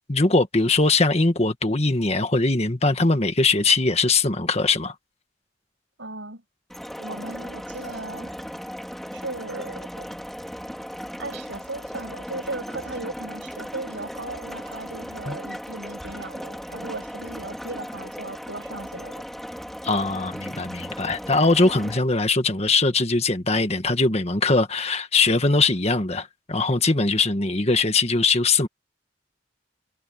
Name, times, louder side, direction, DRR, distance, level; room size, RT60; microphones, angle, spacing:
voice 1, 0.1-4.9 15.3-15.4 19.8-28.7, left 3 dB, 35° left, 1.7 m, -21 dB
voice 2, 6.0-6.4 7.0-8.5 9.1-10.1 11.2-19.2, right 2 dB, 75° right, 6.5 m, -37 dB
sound 1, 6.7-22.0, equal, ahead, 4.0 m, -37 dB
head